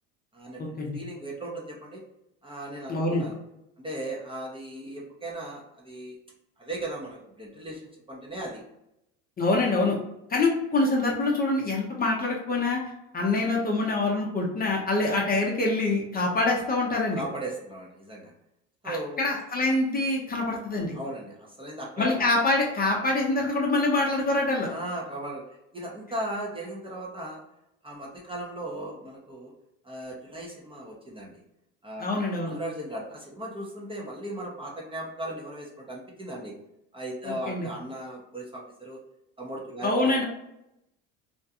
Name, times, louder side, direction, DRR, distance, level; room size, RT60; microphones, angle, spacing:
voice 1, 0.3-2.0 2.4-3.4 3.8-6.2 6.6-8.6 9.5-9.7 17.1-18.3 18.8-19.2 20.9-22.3 24.6-27.4 27.8-29.5 29.8-31.4 31.8-32.1 32.4-36.5 36.9-39.0 39.4-40.2, right 1 dB, 15° right, -3 dB, 0.6 m, -37 dB
voice 2, 2.9-3.2 9.4-10.0 10.3-17.2 18.8-20.9 22.0-24.7 32.0-32.6 37.2-37.7 39.8-40.2, left 2 dB, 25° left, -1 dB, 0.6 m, -25 dB
2.5 x 2.1 x 2.7 m, 0.85 s
supercardioid pair, 95°, 36 cm